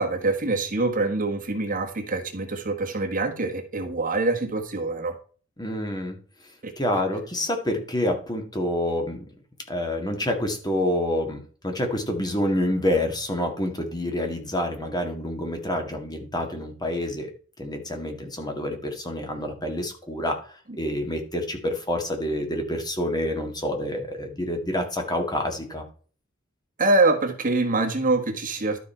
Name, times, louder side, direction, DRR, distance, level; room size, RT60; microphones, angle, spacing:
voice 1, 0.0-5.1 6.6-6.7 26.8-28.8, right 2 dB, 40° right, 5 dB, 1.4 m, -24 dB
voice 2, 5.6-6.2 6.8-9.2 9.7-17.3 17.6-25.8, left 1 dB, 20° left, 4 dB, 1.8 m, -27 dB
12.0 x 5.4 x 4.4 m, 0.40 s
head